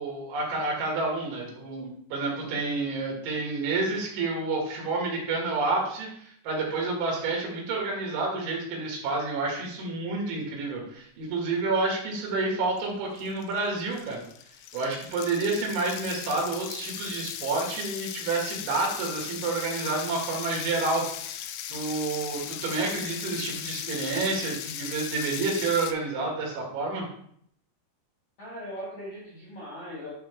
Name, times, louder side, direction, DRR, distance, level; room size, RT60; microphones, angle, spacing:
voice 1, 0.0-14.2 14.7-21.0 21.7-27.1, right 3 dB, 75° right, -2 dB, 4.2 m, -29 dB
sound 1, 12.8-12.9 13.2-25.9, left 10 dB, 90° left, 2.4 m, -38 dB
voice 2, 28.4-30.2, equal, 55° left, -6 dB, 2.2 m, -40 dB
11.5 x 4.2 x 3.3 m, 0.66 s
omnidirectional pair, 5.7 m